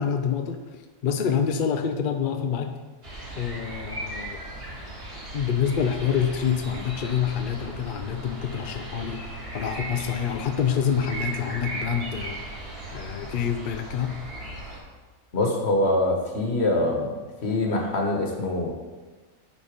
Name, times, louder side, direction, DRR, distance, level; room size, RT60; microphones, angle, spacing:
voice 1, 0.0-2.7 3.4-4.4 5.3-12.4 12.9-14.2, left 7 dB, 65° left, 6 dB, 0.5 m, -27 dB
sound 1, 3.0-14.8, right 2 dB, 45° right, 1.9 m, -37 dB
voice 2, 15.3-17.1 17.4-18.7, left 2 dB, 50° left, 1 dB, 1.5 m, -24 dB
10.0 x 4.0 x 5.1 m, 1.3 s
omnidirectional pair, 1.5 m